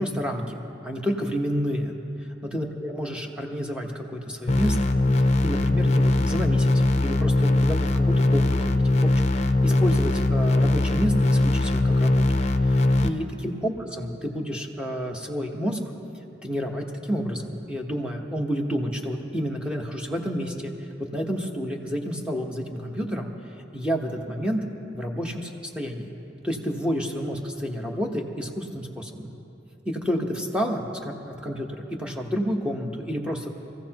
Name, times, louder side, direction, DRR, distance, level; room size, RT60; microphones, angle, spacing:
voice 1, 0.0-4.9 5.4-8.8 9.6-15.8 16.4-20.7 21.0-23.3 23.7-24.6 24.9-26.1 26.4-29.3 29.8-33.5, equal, 5° right, 1 dB, 1.1 m, -30 dB
sound 1, 4.5-13.1, left 2 dB, 40° left, 0.5 m, -21 dB
26.5 x 15.0 x 3.0 m, 2.9 s
head